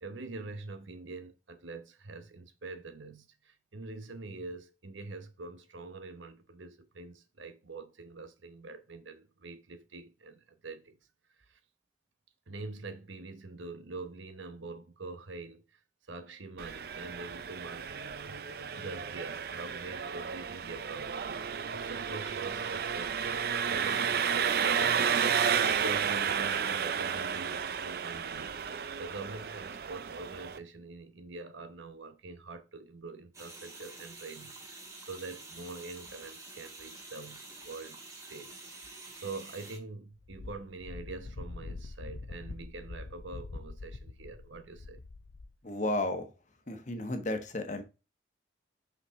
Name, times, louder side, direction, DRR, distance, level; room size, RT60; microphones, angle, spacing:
voice 1, 0.0-11.0 11.4-11.6 12.5-15.8 16.1-17.9 18.2-21.2 21.7-23.2 23.7-25.4 25.7-28.6 29.0-45.0, right 3 dB, 75° right, 1.0 m, -45 dB
Engine, 16.6-30.6, right 7 dB, 50° right, 0.5 m, -32 dB
sound 1, 33.3-39.8, right 2 dB, 15° right, 1.7 m, -48 dB
Wind, 40.2-45.6, left 3 dB, 70° left, 0.6 m, -44 dB
voice 2, 45.6-46.3 46.7-47.8, left 1 dB, 40° left, 1.1 m, -33 dB
5.8 x 5.6 x 3.6 m
head